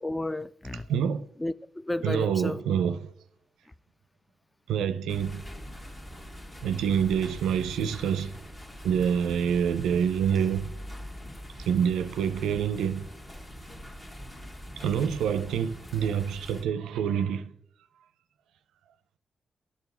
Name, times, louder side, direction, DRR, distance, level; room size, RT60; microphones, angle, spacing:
voice 1, 0.0-0.9 1.4-2.6, left 1 dB, 15° left, 0.3 m, -32 dB
voice 2, 0.9-1.3 2.0-3.1 4.7-5.4 6.6-8.3 8.8-10.7 11.6-13.1 14.8-17.5, right 8 dB, 90° right, 0.4 m, -27 dB
sound 1, 5.1-16.6, equal, 35° left, 1.4 m, -43 dB
11.0 x 4.7 x 5.4 m
supercardioid pair, 55°, 0 cm